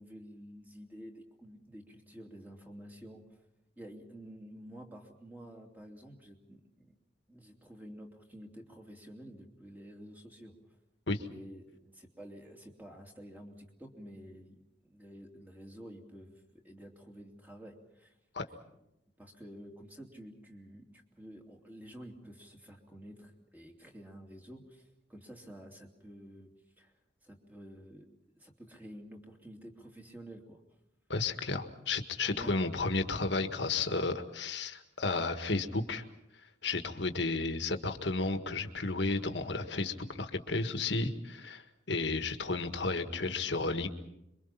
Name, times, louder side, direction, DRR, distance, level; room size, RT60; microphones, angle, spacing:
voice 1, 0.0-3.2 3.8-6.9 7.3-10.6 11.3-14.6 14.8-18.1 19.2-20.9 21.2-26.5 26.8-26.9 27.2-28.1 28.3-30.6 32.4-32.6, equal, 10° right, 2 dB, 2.8 m, -50 dB
voice 2, 31.1-36.0 36.6-43.9, left 3 dB, 65° left, 7 dB, 1.6 m, -33 dB
27.0 x 23.5 x 5.8 m, 0.86 s
head